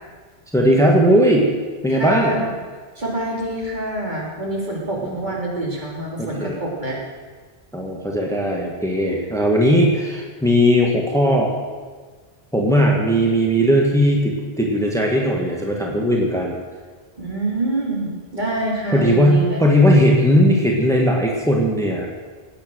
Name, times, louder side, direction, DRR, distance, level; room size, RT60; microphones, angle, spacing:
voice 1, 0.5-1.5 1.8-2.4 5.0-5.1 6.2-6.6 7.7-11.5 12.5-16.5 18.9-22.1, equal, 5° left, -1 dB, 1.8 m, -17 dB
voice 2, 1.9-2.5 3.0-7.0 17.2-19.6, right 2 dB, 45° right, -4 dB, 3.6 m, -26 dB
18.0 x 8.8 x 6.5 m, 1.5 s
omnidirectional pair, 1.1 m